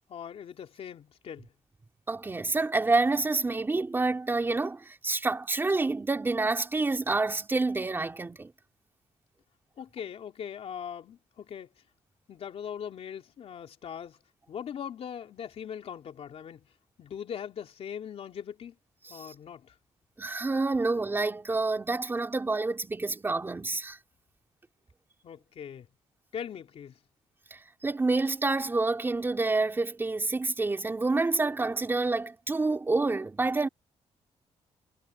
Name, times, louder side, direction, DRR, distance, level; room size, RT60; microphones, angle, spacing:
voice 1, 0.1-1.5 9.8-11.7 12.3-14.2 14.5-16.6 17.0-18.7 19.1-19.7 25.2-25.9 26.3-27.0, left 8 dB, 60° left, 3.0 m, -40 dB
voice 2, 2.1-8.5 19.2-19.3 20.2-24.0 27.5-33.7, right 3 dB, 20° right, 3.1 m, -28 dB
wide cardioid pair, 165°, 12 cm